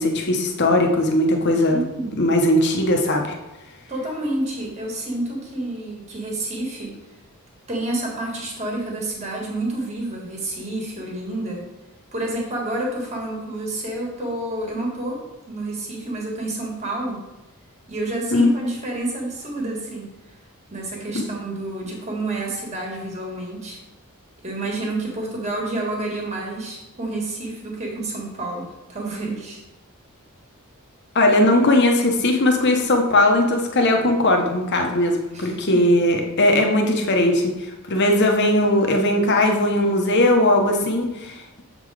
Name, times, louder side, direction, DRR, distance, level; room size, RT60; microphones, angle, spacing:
voice 1, 0.0-1.8 2.2-3.4 18.3-18.5 21.1-21.2 31.1-41.6, left 1 dB, 50° left, 2 dB, 1.0 m, -19 dB
voice 2, 1.7-2.2 3.9-6.9 7.7-11.7 12.1-15.2 15.5-17.2 17.9-20.1 20.7-23.8 24.4-29.6 35.3-35.8, right 2 dB, 30° right, -2 dB, 1.7 m, -29 dB
7.3 x 3.8 x 4.8 m, 1.0 s
head